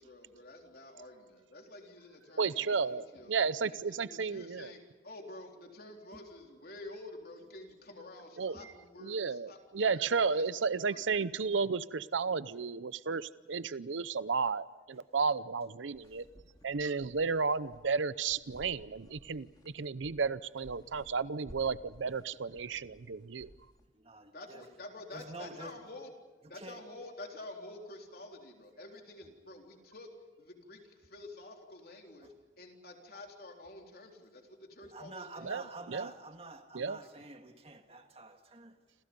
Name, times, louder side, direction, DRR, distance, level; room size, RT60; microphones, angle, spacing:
voice 1, 0.0-3.3 3.7-9.6 9.8-11.0 24.3-26.1 26.5-30.1 30.4-35.8 37.0-37.1, left 2 dB, 50° left, 2 dB, 3.9 m, -49 dB
voice 2, 2.4-4.7 8.4-8.5 9.0-16.2 16.6-23.5 35.4-35.6 35.9-36.1 36.7-37.0, right 5 dB, 85° right, 16 dB, 0.7 m, -33 dB
sound 1, 15.9-23.9, equal, 20° left, 2.5 m, -57 dB
voice 3, 23.9-24.7 25.1-25.8 26.5-26.8 32.2-32.3 34.8-38.8, right 2 dB, 30° right, 5 dB, 2.0 m, -48 dB
29.0 x 27.0 x 5.4 m, 1.2 s
head